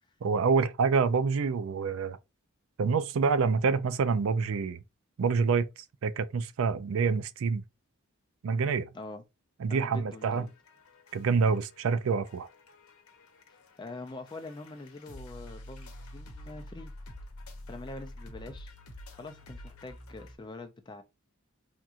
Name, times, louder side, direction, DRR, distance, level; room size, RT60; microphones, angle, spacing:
voice 1, 0.2-2.2 2.8-4.8 5.2-7.6 8.4-8.9 9.6-10.5 11.1-12.5, right 5 dB, 70° right, 0.4 m, -27 dB
voice 2, 9.7-10.5 13.5-16.9 17.7-18.7 19.2-21.0, left 2 dB, 20° left, 0.3 m, -44 dB
sound 1, 10.2-20.4, left 1 dB, 85° left, 0.8 m, -48 dB
3.5 x 2.8 x 2.4 m
head